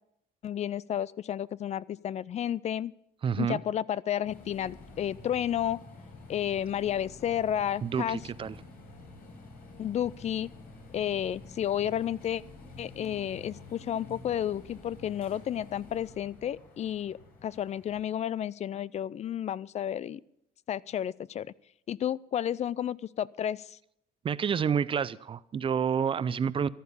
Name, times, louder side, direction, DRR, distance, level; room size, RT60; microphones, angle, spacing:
voice 1, 0.4-2.9 3.4-5.8 6.3-8.2 9.8-10.5 10.9-12.4 12.8-20.2 20.7-21.5 21.9-23.8, left 10 dB, 40° left, 0.4 m, -31 dB
voice 2, 3.2-3.6 7.8-8.6 24.2-26.7, right 7 dB, 30° right, 0.5 m, -29 dB
sound 1, 4.2-18.0, left 2 dB, 65° left, 4.9 m, -49 dB
14.5 x 12.0 x 5.5 m
cardioid pair, 110°, 17 cm